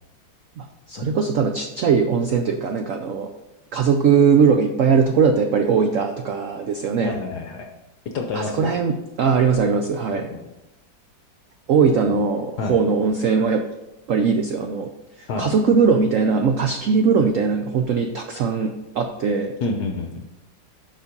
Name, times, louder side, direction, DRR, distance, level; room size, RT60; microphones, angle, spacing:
voice 1, 0.6-3.3 3.7-7.2 8.3-10.3 11.7-13.6 14.1-14.9 15.2-19.5, right 5 dB, 80° right, 5 dB, 0.7 m, -20 dB
voice 2, 7.0-7.7 8.1-8.8 10.1-10.5 12.6-12.7 15.3-15.5 19.6-20.2, left 3 dB, 65° left, 3 dB, 1.2 m, -28 dB
7.1 x 5.5 x 5.2 m, 0.93 s
omnidirectional pair, 2.1 m